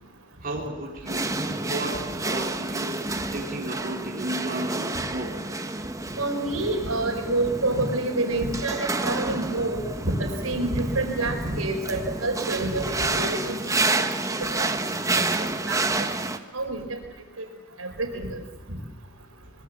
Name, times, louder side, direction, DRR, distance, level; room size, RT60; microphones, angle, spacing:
voice 1, 0.4-1.3 1.6-5.4, right 1 dB, 45° right, -2 dB, 3.7 m, -34 dB
sound 1, 1.1-16.4, right 2 dB, 15° right, 1.3 m, -29 dB
voice 2, 6.2-9.8 10.2-13.6 13.9-14.1 14.5-14.8 15.6-16.0 16.5-17.0 17.4-17.5 17.8-18.4, right 2 dB, 80° right, 3 dB, 4.9 m, -27 dB
24.0 x 22.5 x 7.5 m, 1.1 s
head